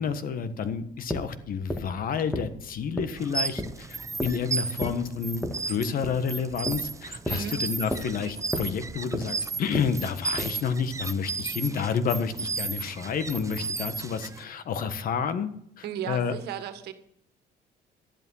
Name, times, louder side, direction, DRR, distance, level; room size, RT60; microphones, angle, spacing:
voice 1, 0.0-15.5 15.8-16.3, left 6 dB, 55° left, 11 dB, 1.5 m, -30 dB
sound 1, 1.0-10.7, left 1 dB, 5° left, 1.8 m, -35 dB
sound 2, 3.2-14.4, right 4 dB, 20° right, 0.7 m, -34 dB
voice 2, 15.8-16.9, right 9 dB, 75° right, 10 dB, 1.7 m, -34 dB
12.5 x 11.0 x 5.7 m, 0.69 s
cardioid pair, 110°, 17 cm